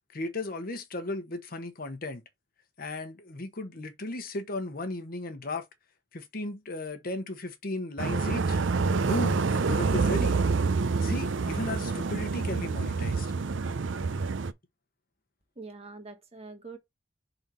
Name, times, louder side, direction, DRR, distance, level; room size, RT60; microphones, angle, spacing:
voice 1, 0.1-2.2 2.8-5.7 6.1-8.6 9.0-10.4 11.0-13.3, left 2 dB, 50° left, 1.0 m, -35 dB
sound 1, 8.0-14.5, right 4 dB, 75° right, 0.5 m, -27 dB
voice 2, 15.6-16.8, right 3 dB, 30° right, 1.4 m, -44 dB
5.4 x 4.0 x 4.6 m
head